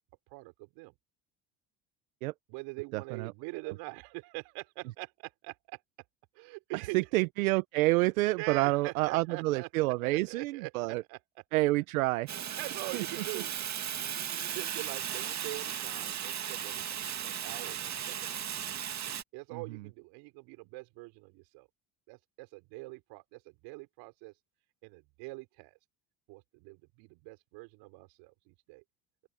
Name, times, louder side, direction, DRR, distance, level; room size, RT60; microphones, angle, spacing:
voice 1, 0.3-0.9 2.5-5.8 6.3-7.1 8.4-9.7 10.0-11.4 12.6-13.5 14.0-18.5 19.3-21.7 22.1-24.3 24.8-25.8 26.3-28.8, right 26 dB, 75° right, 5.8 m, -44 dB
voice 2, 2.9-3.3 6.9-11.0 11.5-12.3 12.9-13.0 13.3-13.4 19.5-19.6, right 20 dB, 90° right, 0.9 m, -28 dB
Fire, 12.3-19.2, right 9 dB, 40° right, 2.2 m, -36 dB
open air
supercardioid pair, 85°, 41 cm